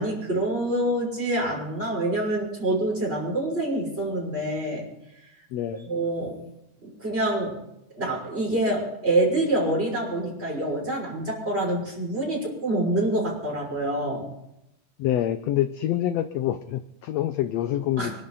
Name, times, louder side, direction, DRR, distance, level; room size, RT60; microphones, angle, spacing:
voice 1, 0.0-4.8 5.9-6.4 6.8-7.6 8.0-14.2 18.0-18.1, right 1 dB, 20° right, -3 dB, 6.2 m, -26 dB
voice 2, 5.5-5.9 15.0-18.1, left 12 dB, 70° left, 10 dB, 1.7 m, -26 dB
25.5 x 12.0 x 4.1 m, 0.82 s
omnidirectional pair, 3.5 m